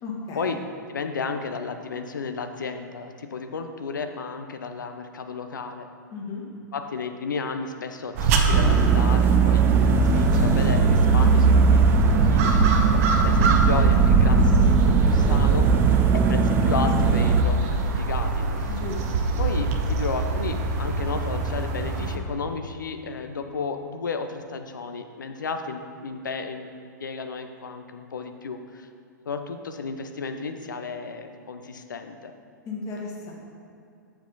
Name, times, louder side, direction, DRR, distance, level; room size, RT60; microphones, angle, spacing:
voice 1, 0.0-0.6 6.1-6.4 18.7-19.3 32.6-33.3, left 4 dB, 30° left, -2 dB, 1.7 m, -35 dB
voice 2, 0.9-5.9 6.7-9.6 10.0-12.7 13.2-15.7 16.1-18.7 19.4-26.7 27.0-28.9 29.3-32.3, left 4 dB, 70° left, 7 dB, 0.7 m, -33 dB
sound 1, 8.1-22.2, right 4 dB, 45° right, 0.8 m, -23 dB
sound 2, 8.5-17.4, right 5 dB, 20° right, 0.5 m, -20 dB
7.4 x 7.1 x 4.0 m, 2.6 s
figure-of-eight pair, 105°, 11 cm